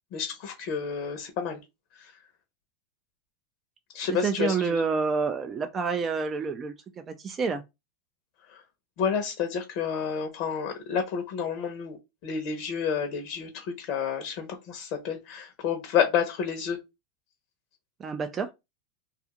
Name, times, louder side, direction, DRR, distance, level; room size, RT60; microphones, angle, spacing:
voice 1, 0.1-1.6 2.0-2.1 3.9-4.8 8.5-8.6 9.0-12.0 12.2-16.8, left 7 dB, 55° left, 0.7 m, -30 dB
voice 2, 4.1-6.7 7.1-7.6 18.0-18.5, right 5 dB, 25° right, 0.4 m, -28 dB
2.4 x 2.4 x 2.9 m
supercardioid pair, 125°, 0 cm